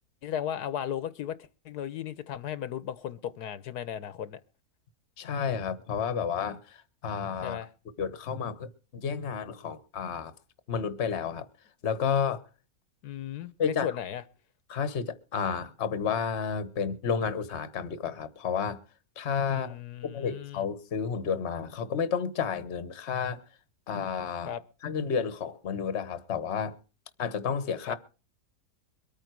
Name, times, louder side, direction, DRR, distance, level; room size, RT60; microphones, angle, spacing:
voice 1, 0.2-1.4 1.6-4.4 7.4-7.7 13.0-14.2 19.5-20.7 24.4-24.6 27.9-28.0, left 9 dB, 85° left, 1.4 m, -36 dB
voice 2, 5.2-7.6 8.0-10.3 10.7-11.5 11.8-12.4 13.6-13.9 14.7-18.8 19.2-19.7 20.0-23.4 23.9-24.5 24.8-26.8 27.2-27.9, left 6 dB, 50° left, 1.3 m, -31 dB
23.0 x 9.2 x 4.6 m
omnidirectional pair, 1.6 m